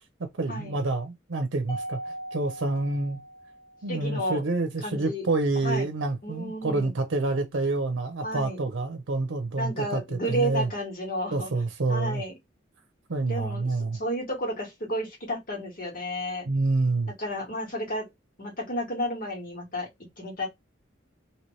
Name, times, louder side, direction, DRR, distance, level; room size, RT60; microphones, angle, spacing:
voice 1, 0.2-3.2 3.8-10.7 11.3-12.2 13.1-14.0 16.4-17.1, right 3 dB, 85° right, 0.6 m, -28 dB
Mallet percussion, 1.7-4.1, right 1 dB, 25° left, 0.9 m, -39 dB
voice 2, 3.9-4.4 4.8-5.2 5.5-5.8 6.2-6.9 8.2-8.6 9.6-11.5 11.9-12.3 13.2-16.5 17.2-18.1 18.4-19.9 20.2-20.5, equal, 45° left, 1.7 m, -32 dB
2.9 x 2.9 x 3.1 m
head